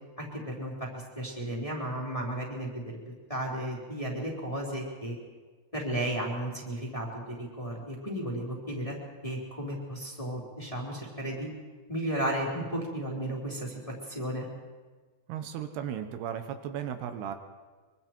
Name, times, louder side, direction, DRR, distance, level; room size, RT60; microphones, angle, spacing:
voice 1, 0.2-2.7 3.3-5.2 5.7-8.9 9.2-11.5 11.9-13.8 14.1-14.5, right 1 dB, 10° left, -3 dB, 3.4 m, -34 dB
voice 2, 15.3-17.4, right 9 dB, 80° right, 7 dB, 3.1 m, -35 dB
24.5 x 24.0 x 4.6 m, 1.4 s
omnidirectional pair, 4.7 m